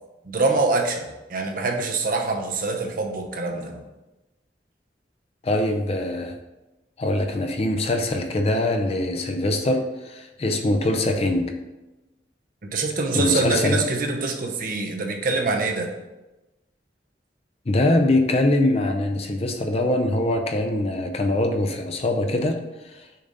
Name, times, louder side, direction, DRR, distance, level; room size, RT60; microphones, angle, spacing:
voice 1, 0.2-3.8 12.6-15.9, right 3 dB, 50° right, 3 dB, 0.7 m, -25 dB
voice 2, 5.4-6.3 7.0-11.5 13.1-13.9 17.7-22.6 22.8-23.1, left 1 dB, 35° left, 5 dB, 0.5 m, -23 dB
6.6 x 3.9 x 4.0 m, 1.0 s
head